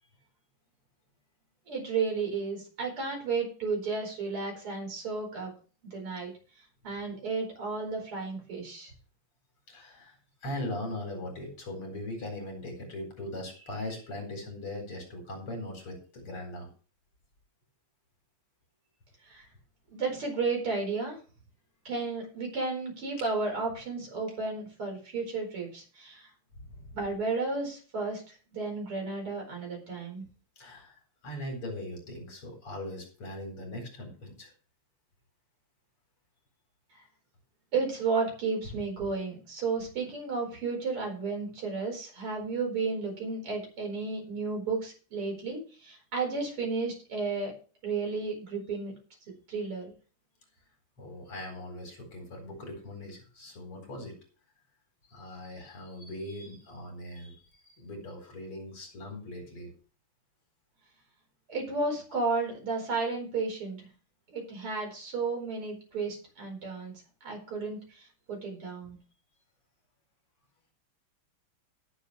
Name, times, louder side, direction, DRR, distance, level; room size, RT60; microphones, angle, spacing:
voice 1, 1.7-5.5 5.8-6.3 6.8-8.9 19.3-19.4 19.9-21.2 21.9-26.3 26.9-30.2 37.7-47.5 47.8-48.9 49.5-49.9 61.5-63.9 64.3-66.9 67.2-69.0, right 4 dB, 85° right, 1 dB, 5.7 m, -33 dB
voice 2, 9.7-16.7 26.6-26.9 30.6-34.5 51.0-54.2 55.1-59.7, left 1 dB, 80° left, 2 dB, 5.1 m, -40 dB
17.5 x 7.4 x 3.3 m, 0.37 s
omnidirectional pair, 2.4 m